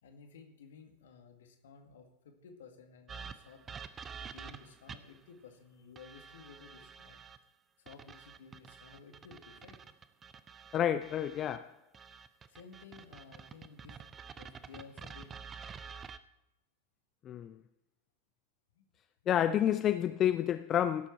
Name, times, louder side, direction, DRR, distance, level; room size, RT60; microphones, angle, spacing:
voice 1, 0.0-3.8 4.2-7.2 7.8-9.8 12.5-14.0 14.4-15.4 18.7-18.9 19.2-19.3, left 5 dB, 60° left, 1.8 m, -55 dB
sound 1, 3.1-5.2 6.0-7.4 7.9-11.6 11.9-16.2, right 6 dB, 20° right, 0.6 m, -48 dB
voice 2, 10.7-11.8 17.2-17.6 19.3-21.1, left 10 dB, 30° left, 0.4 m, -29 dB
17.0 x 7.2 x 4.4 m
figure-of-eight pair, 90°, 0 cm